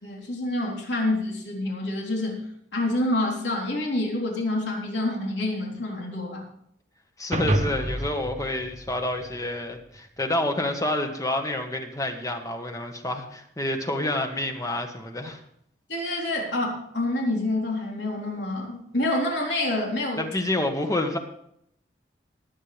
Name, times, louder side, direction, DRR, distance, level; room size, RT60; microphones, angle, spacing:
voice 1, 0.0-2.5 2.7-6.4 15.9-20.2, left 1 dB, 75° left, -1 dB, 3.6 m, -27 dB
voice 2, 7.2-15.4 20.2-21.2, left 1 dB, 20° left, 4 dB, 1.4 m, -28 dB
sound 1, 7.3-9.8, right 1 dB, 40° right, 1.2 m, -29 dB
19.0 x 8.7 x 3.4 m, 0.72 s
head